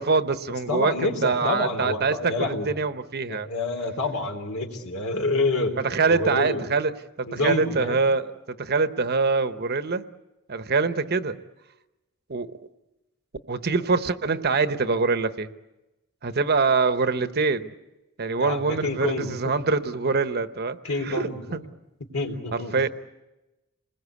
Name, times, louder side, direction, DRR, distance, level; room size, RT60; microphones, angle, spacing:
voice 1, 0.0-3.5 5.8-6.9 7.2-10.0 10.5-11.4 12.3-12.5 13.5-15.5 16.2-17.7 18.2-20.8 21.1-21.6 22.5-22.9, right 4 dB, 45° right, 11 dB, 1.0 m, -24 dB
voice 2, 0.7-2.7 3.3-5.7 6.1-6.6 7.3-8.0 18.4-19.3 20.8-21.6 22.0-22.7, left 2 dB, 80° left, 4 dB, 3.5 m, -28 dB
28.5 x 21.0 x 8.4 m, 1.0 s
head